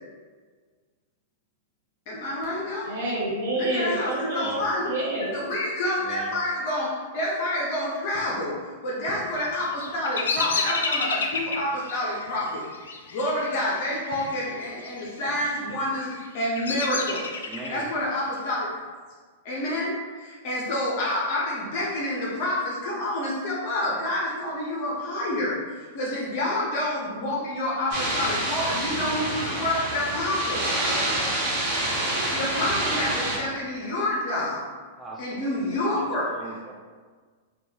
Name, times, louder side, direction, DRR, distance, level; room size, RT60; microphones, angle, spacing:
voice 1, 2.1-2.9 3.6-4.9 5.3-8.6 8.8-12.6 13.1-17.3 17.7-18.7 19.4-25.6 25.9-30.6 32.3-34.6 35.2-36.3, left 1 dB, 55° left, -5 dB, 0.8 m, -28 dB
voice 2, 2.8-5.3, right 1 dB, 70° right, -6 dB, 1.4 m, -28 dB
voice 3, 4.4-4.7 6.0-6.4 17.4-17.9 35.0-35.5 35.9-36.7, right 2 dB, 10° right, -1 dB, 0.4 m, -40 dB
Bird vocalization bird call bird song, 9.4-14.4 14.7-15.3 15.9-17.8, left 4 dB, 85° left, 0.4 m, -30 dB
sound 1, 27.9-33.4, right 1 dB, 50° right, 1.2 m, -27 dB
3.7 x 2.4 x 2.9 m, 1.5 s
hypercardioid pair, 115°, 0 cm